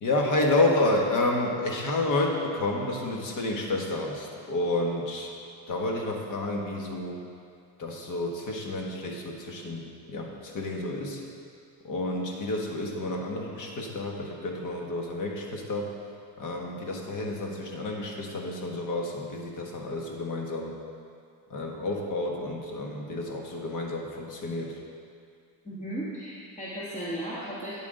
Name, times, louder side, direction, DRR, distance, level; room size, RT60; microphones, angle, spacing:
voice 1, 0.0-5.3 5.7-7.2 7.8-11.2 11.8-15.9 16.4-20.7 21.5-24.8, left 2 dB, 40° left, 1 dB, 1.4 m, -30 dB
voice 2, 25.6-27.8, right 1 dB, 15° left, -7 dB, 1.5 m, -35 dB
9.5 x 8.6 x 3.8 m, 2.3 s
cardioid pair, 125°, 47 cm